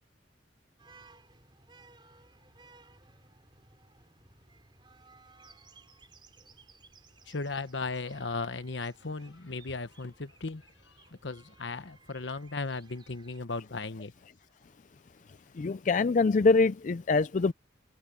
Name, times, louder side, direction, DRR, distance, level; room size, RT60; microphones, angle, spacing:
sound 1, 0.8-13.4, right 3 dB, 25° right, 3.3 m, -58 dB
voice 1, 7.3-10.9 11.2-14.1, left 3 dB, 70° left, 1.1 m, -36 dB
voice 2, 15.5-17.5, left 4 dB, 40° left, 0.4 m, -24 dB
head